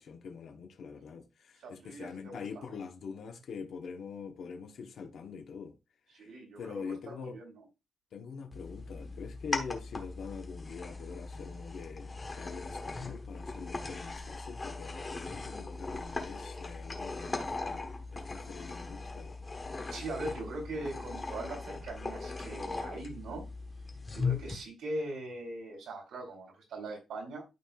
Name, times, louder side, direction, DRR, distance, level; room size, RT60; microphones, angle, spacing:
voice 1, 0.0-5.8 6.1-6.3 6.6-7.4 8.1-19.4, left 5 dB, 55° left, 1.1 m, -44 dB
voice 2, 1.6-2.6 6.1-7.6 19.9-23.4 24.1-27.4, right 2 dB, 80° right, 3.7 m, -41 dB
sound 1, 8.5-24.6, left 3 dB, 20° left, 1.2 m, -39 dB
12.5 x 4.4 x 2.3 m
wide cardioid pair, 175°, 0 cm